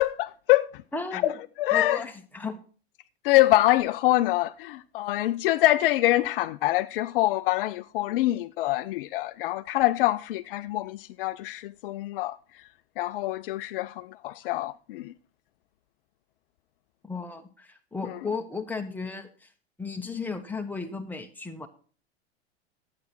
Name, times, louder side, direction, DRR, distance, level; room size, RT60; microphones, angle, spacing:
voice 1, 0.0-0.8 1.1-2.0 3.2-12.6 13.0-15.1 18.0-18.2, left 16 dB, 55° left, 0.5 m, -25 dB
voice 2, 0.9-1.3 1.7-2.6 17.0-19.5 19.8-21.7, left 4 dB, 5° left, 1.4 m, -34 dB
11.0 x 8.3 x 4.5 m
hypercardioid pair, 95°, 33 cm